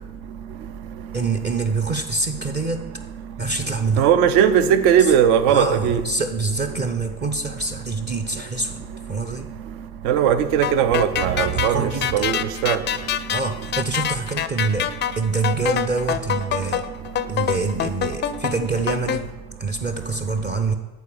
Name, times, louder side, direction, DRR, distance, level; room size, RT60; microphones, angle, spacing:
voice 1, 1.1-2.8 3.4-4.1 5.0-5.1 5.5-8.8 9.1-9.5 11.4-12.3 13.3-16.8 17.3-19.3 19.6-20.8, right 3 dB, 25° right, 5 dB, 0.5 m, -25 dB
voice 2, 4.0-6.0 10.0-12.8, right 9 dB, 65° right, 11 dB, 0.8 m, -18 dB
sound 1, 10.6-19.2, left 10 dB, 25° left, 0.4 m, -25 dB
8.2 x 4.0 x 7.0 m, 1.2 s
hypercardioid pair, 75°, 45 cm